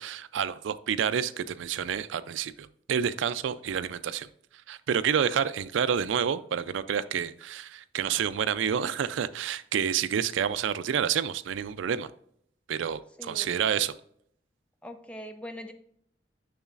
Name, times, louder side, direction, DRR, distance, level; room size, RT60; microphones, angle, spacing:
voice 1, 0.0-4.3 4.7-12.1 12.7-13.9, right 8 dB, 85° right, 13 dB, 0.4 m, -29 dB
voice 2, 13.2-13.6 14.8-15.7, equal, 5° left, 6 dB, 0.5 m, -41 dB
6.9 x 6.4 x 2.4 m, 0.67 s
head